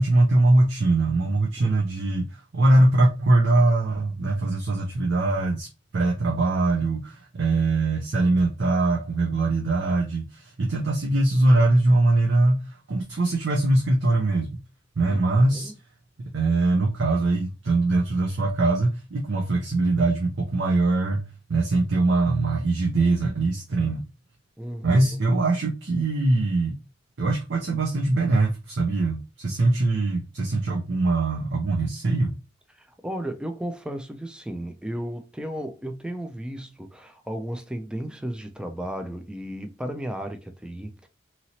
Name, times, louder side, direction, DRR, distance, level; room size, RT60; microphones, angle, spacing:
voice 1, 0.0-14.5 15.0-15.7 16.3-24.1 24.8-26.8 27.2-32.3, right 2 dB, 60° right, 0.6 m, -22 dB
voice 2, 15.1-15.7 24.6-25.1 32.8-41.1, right 1 dB, 5° right, 0.3 m, -34 dB
2.8 x 2.8 x 2.7 m
head